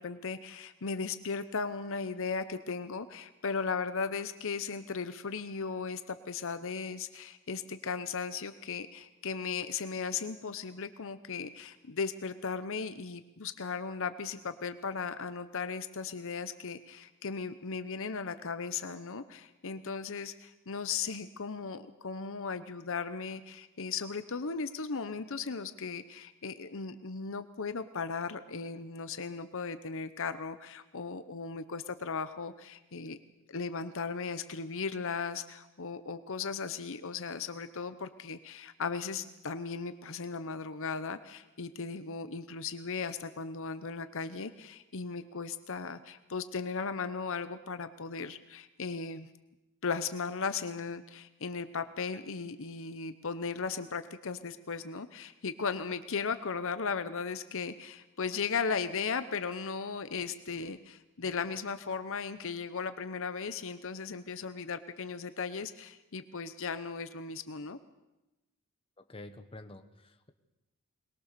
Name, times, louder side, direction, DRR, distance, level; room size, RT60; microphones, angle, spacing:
voice 1, 0.0-33.2 33.5-49.3 49.8-67.8, left 5 dB, 65° left, 11 dB, 0.9 m, -37 dB
voice 2, 69.1-70.3, left 2 dB, 25° left, 7 dB, 1.4 m, -48 dB
22.5 x 21.0 x 6.8 m, 1.0 s
head